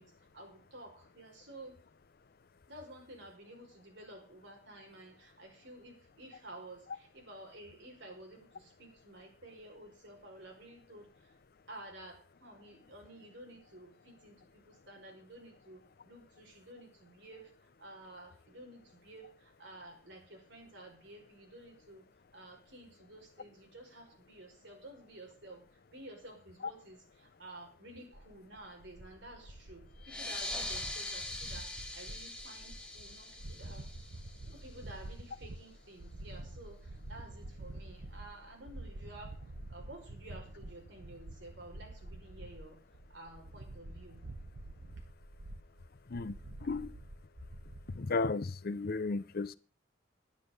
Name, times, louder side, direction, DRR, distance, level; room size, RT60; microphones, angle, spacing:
voice 1, 0.0-1.8 2.7-11.4 11.7-22.0 22.3-33.9 34.4-44.2, right 1 dB, 65° right, 5.2 m, -52 dB
sound 1, 28.1-48.0, right 1 dB, 90° right, 1.1 m, -48 dB
sound 2, 30.0-35.1, left 2 dB, 5° left, 1.5 m, -42 dB
voice 2, 46.1-47.0 47.9-49.6, left 3 dB, 50° left, 0.6 m, -34 dB
11.0 x 9.9 x 6.6 m
head